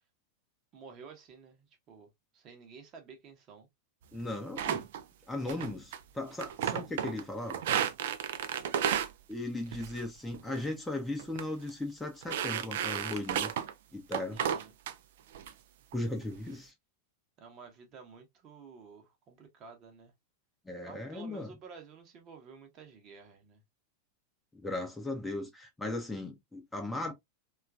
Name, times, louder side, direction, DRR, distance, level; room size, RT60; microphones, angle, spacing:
voice 1, 0.7-3.7 14.3-14.7 17.4-20.1 20.8-23.6, right 5 dB, 35° right, 0.8 m, -52 dB
voice 2, 4.1-4.9 5.3-7.6 9.3-13.5 13.9-14.4 15.9-16.7 20.7-21.5 24.5-27.1, left 2 dB, 5° left, 0.6 m, -37 dB
sound 1, 4.6-5.0 5.5-6.0 6.3-7.2 7.5-9.1 9.7-10.0 10.3-10.7 11.2-11.4 11.7-11.8 12.2-13.7 14.1-14.9 15.3-15.5 15.9-16.4, right 9 dB, 55° right, 0.3 m, -33 dB
3.0 x 2.4 x 2.3 m
figure-of-eight pair, 90°, 0 cm